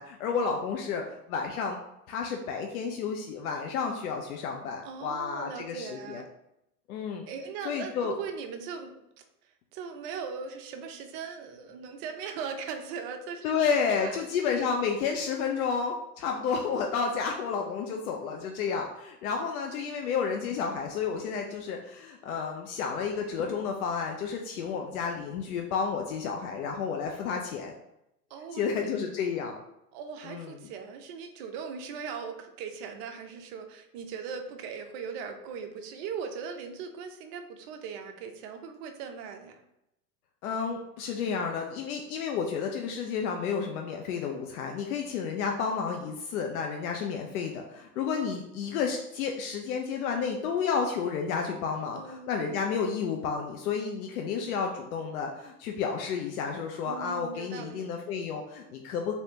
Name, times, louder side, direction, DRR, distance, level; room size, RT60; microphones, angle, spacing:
voice 1, 0.0-1.8 2.1-6.2 6.9-7.3 7.6-8.1 13.4-27.7 28.5-29.6 30.3-30.5 40.4-59.1, left 6 dB, 65° left, 2 dB, 0.6 m, -31 dB
voice 2, 4.8-6.3 7.3-9.2 9.7-13.6 14.0-14.2 24.6-24.8 28.3-28.8 29.9-39.6 51.9-52.6 52.9-53.0 56.8-57.9, right 6 dB, 40° right, 5 dB, 0.6 m, -39 dB
3.3 x 2.7 x 2.7 m, 0.84 s
hypercardioid pair, 95°, 47 cm